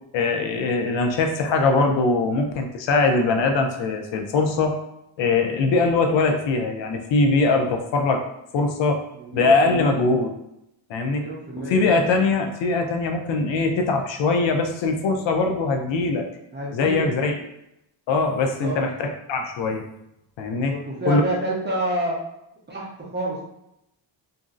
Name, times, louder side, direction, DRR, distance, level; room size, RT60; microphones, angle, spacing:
voice 1, 0.1-4.8 5.2-8.3 8.5-9.1 9.3-10.3 10.9-11.3 11.6-16.3 16.7-17.4 18.1-19.8 20.4-20.7 21.1-21.2, left 3 dB, 70° left, 4 dB, 0.5 m, -21 dB
voice 2, 9.1-10.0 11.1-11.9 16.5-17.1 18.4-18.8 20.5-22.2 22.7-23.4, right 1 dB, 25° right, -4 dB, 0.5 m, -29 dB
2.9 x 2.6 x 2.5 m, 0.84 s
wide cardioid pair, 165°, 47 cm